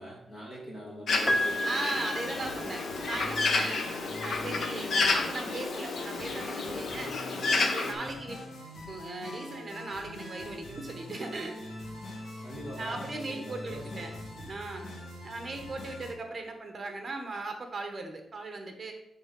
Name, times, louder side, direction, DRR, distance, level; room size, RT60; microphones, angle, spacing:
voice 1, 0.0-2.5 4.0-4.2 12.4-14.2, equal, 30° left, -4 dB, 2.3 m, -43 dB
Bird, 1.1-7.9, left 3 dB, 55° left, 0.9 m, -30 dB
Piano, 1.3-3.3 4.5-4.6, left 1 dB, 10° left, 0.6 m, -31 dB
voice 2, 1.6-3.9 4.2-7.2 7.5-8.5 8.9-11.7 12.8-14.1 14.3-14.9 15.2-18.9, right 3 dB, 30° right, 4 dB, 1.3 m, -38 dB
sound 1, 1.9-16.1, left 1 dB, 90° left, 1.9 m, -44 dB
7.1 x 4.0 x 5.3 m, 0.81 s
wide cardioid pair, 150°, 0 cm